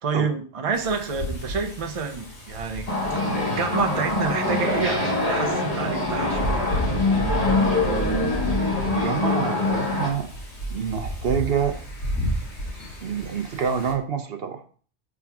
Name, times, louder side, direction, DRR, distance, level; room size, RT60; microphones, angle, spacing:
voice 1, 0.0-6.6, right 5 dB, 35° right, 0.7 m, -28 dB
Wind, 0.7-13.9, equal, 75° left, 2.4 m, -33 dB
sound 1, 2.9-10.1, left 2 dB, 35° left, 1.6 m, -24 dB
voice 2, 8.8-10.3 10.7-11.8 13.0-14.6, right 7 dB, 60° right, 0.9 m, -27 dB
5.9 x 3.7 x 5.9 m
omnidirectional pair, 1.2 m